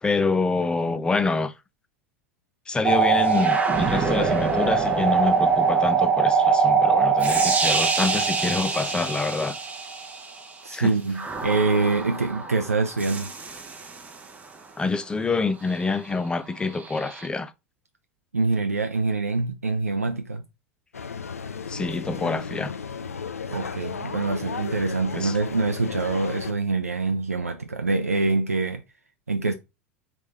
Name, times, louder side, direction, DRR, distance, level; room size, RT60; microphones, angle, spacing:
voice 1, 0.0-1.5 2.7-9.5 10.7-10.9 14.8-17.5 21.7-22.7 25.2-25.3, left 4 dB, 10° left, 0.4 m, -26 dB
sound 1, 2.8-10.4 11.2-14.2 16.8-17.3, right 5 dB, 20° right, 0.9 m, -23 dB
voice 2, 10.6-13.3 18.3-20.4 23.5-28.8 29.3-29.5, right 3 dB, 85° right, 0.4 m, -25 dB
sound 2, 20.9-26.5, left 6 dB, 80° left, 0.4 m, -34 dB
3.3 x 3.2 x 4.1 m
figure-of-eight pair, 80°, 8 cm